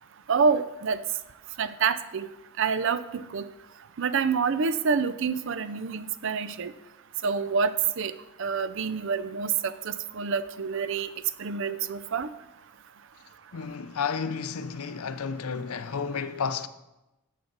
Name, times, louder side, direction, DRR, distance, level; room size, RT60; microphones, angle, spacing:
voice 1, 0.3-1.0 1.6-2.3 2.6-3.5 4.0-6.7 7.2-8.1 8.4-11.1 11.4-12.3, right 5 dB, 60° right, 0.5 m, -27 dB
voice 2, 13.5-16.7, left 6 dB, 85° left, 0.6 m, -31 dB
12.5 x 7.5 x 4.0 m
head